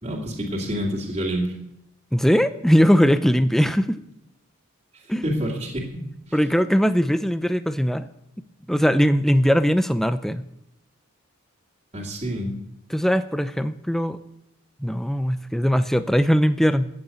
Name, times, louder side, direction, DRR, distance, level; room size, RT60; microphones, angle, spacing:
voice 1, 0.0-1.5 5.2-6.0 11.9-12.5, equal, 30° right, -4 dB, 2.4 m, -27 dB
voice 2, 2.1-4.0 5.1-5.2 6.3-8.1 8.7-10.4 12.9-14.2 14.8-16.9, equal, ahead, 11 dB, 0.5 m, -20 dB
14.0 x 8.3 x 9.0 m, 0.81 s
head